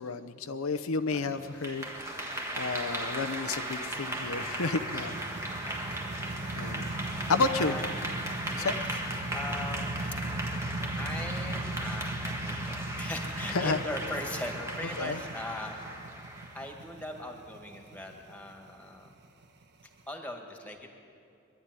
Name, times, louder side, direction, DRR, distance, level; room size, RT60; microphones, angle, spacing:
voice 1, 0.0-5.4 6.6-6.9 7.3-7.7 8.6-8.7 13.5-13.8 15.0-15.2, left 4 dB, 90° left, 10 dB, 0.8 m, -31 dB
voice 2, 1.1-1.5 5.6-6.1 7.6-7.9 8.5-9.0 9.3-9.9 11.0-16.1 16.5-19.1 20.1-20.9, left 1 dB, 5° left, 3 dB, 2.0 m, -40 dB
sound 1, 1.2-20.0, right 2 dB, 55° right, 1.2 m, -39 dB
Clapping / Applause, 1.4-16.7, right 1 dB, 15° right, 1.7 m, -37 dB
23.5 x 11.5 x 9.7 m, 2.6 s
head